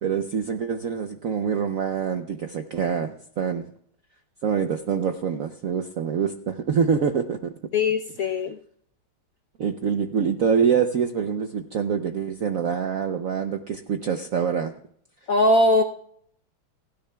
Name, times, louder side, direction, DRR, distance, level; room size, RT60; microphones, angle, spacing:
voice 1, 0.0-3.7 4.4-7.5 9.6-14.7, right 7 dB, 70° right, 7 dB, 0.8 m, -25 dB
voice 2, 7.7-8.6 15.3-15.8, left 2 dB, 65° left, 5 dB, 0.8 m, -20 dB
30.0 x 10.5 x 2.3 m, 0.64 s
omnidirectional pair, 2.3 m